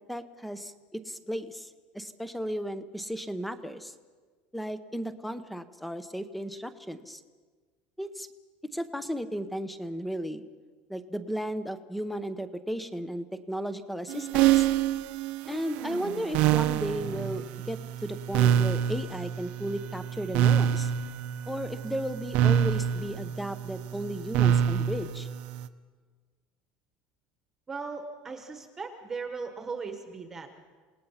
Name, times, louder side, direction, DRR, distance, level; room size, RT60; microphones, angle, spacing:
voice 1, 0.1-1.7 1.9-3.9 4.5-7.2 8.0-8.3 8.7-10.4 10.9-14.7 15.5-20.9 21.5-25.3, equal, ahead, 11 dB, 0.8 m, -35 dB
sound 1, 14.1-25.7, right 10 dB, 50° right, 0.9 m, -27 dB
voice 2, 27.7-30.6, right 4 dB, 15° right, 5 dB, 1.3 m, -38 dB
28.0 x 19.0 x 5.7 m, 1.4 s
cardioid pair, 180°, 3 cm